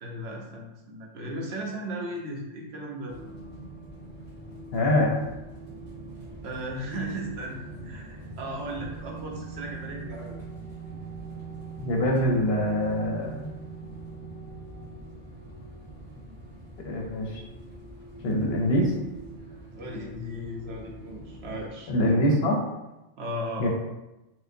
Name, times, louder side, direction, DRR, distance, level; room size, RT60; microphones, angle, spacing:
voice 1, 0.0-3.1 6.4-10.4 19.7-21.9 23.2-23.7, right 1 dB, 65° right, -1 dB, 0.9 m, -36 dB
sound 1, 3.1-21.7, right 3 dB, 40° right, 1.3 m, -42 dB
voice 2, 4.7-5.1 11.8-13.5 16.8-17.4 18.2-18.9 21.9-22.5 23.6-23.7, left 1 dB, 65° left, 0 dB, 0.8 m, -24 dB
4.5 x 2.1 x 2.6 m, 0.98 s
omnidirectional pair, 1.2 m